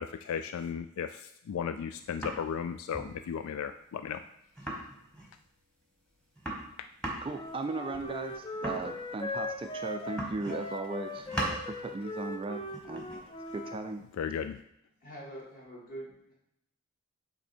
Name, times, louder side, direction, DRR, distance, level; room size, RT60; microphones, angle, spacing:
voice 1, 0.0-4.2 14.2-14.6, left 7 dB, 80° left, 10 dB, 0.3 m, -35 dB
sound 1, 1.9-2.6 2.9-3.2 3.5-3.6 3.8-3.9 4.1-4.2 4.6-5.4 5.8-5.9 6.1-9.7 10.1-10.7 11.0-11.7 12.6-14.4, right 1 dB, 5° left, 1.2 m, -39 dB
Wind instrument woodwind instrument, 7.2-13.8, left 2 dB, 25° left, 0.5 m, -39 dB
voice 2, 7.2-14.0, right 3 dB, 25° right, 6 dB, 0.3 m, -37 dB
voice 3, 15.0-16.3, right 1 dB, 40° left, -5 dB, 2.3 m, -45 dB
8.4 x 3.3 x 4.4 m, 0.78 s
head